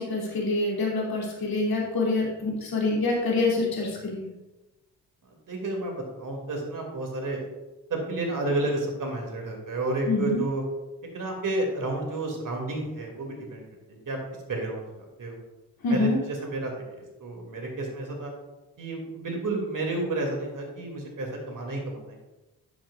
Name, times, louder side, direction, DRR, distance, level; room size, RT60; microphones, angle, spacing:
voice 1, 0.0-4.3 10.1-10.4 15.8-16.2, left 3 dB, 50° left, -3 dB, 3.0 m, -26 dB
voice 2, 5.3-7.5 7.9-10.6 11.1-14.2 14.4-15.4 15.9-18.3 18.8-22.2, right 2 dB, 45° right, 1 dB, 2.6 m, -31 dB
10.0 x 8.5 x 2.5 m, 1.1 s
hypercardioid pair, 45°, 45 cm